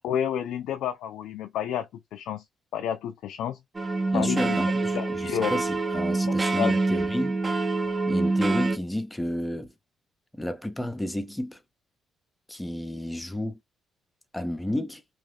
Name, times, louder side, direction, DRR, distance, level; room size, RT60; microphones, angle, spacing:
voice 1, 0.0-2.5 2.7-3.6 4.1-4.6 4.9-5.6 6.3-6.7, left 9 dB, 85° left, 0.3 m, -30 dB
sound 1, 3.7-8.8, right 3 dB, 25° right, 0.8 m, -26 dB
voice 2, 4.1-7.4 8.1-9.7 10.3-11.6 12.5-13.6 14.3-15.0, left 1 dB, 10° left, 0.7 m, -31 dB
3.0 x 2.4 x 3.4 m
cardioid pair, 90°, 0 cm